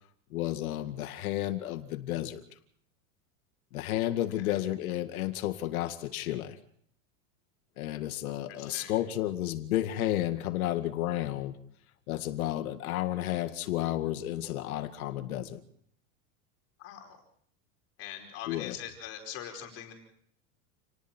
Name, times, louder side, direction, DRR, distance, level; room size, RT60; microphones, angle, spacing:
voice 1, 0.3-2.4 3.7-6.6 7.8-11.6 12.1-15.6 18.5-18.7, left 13 dB, 70° left, 8 dB, 2.1 m, -32 dB
voice 2, 3.9-4.6 8.3-8.9 16.8-17.2 18.0-19.9, left 10 dB, 30° left, 3 dB, 5.2 m, -43 dB
29.5 x 19.5 x 4.5 m, 0.65 s
supercardioid pair, 170°, 44 cm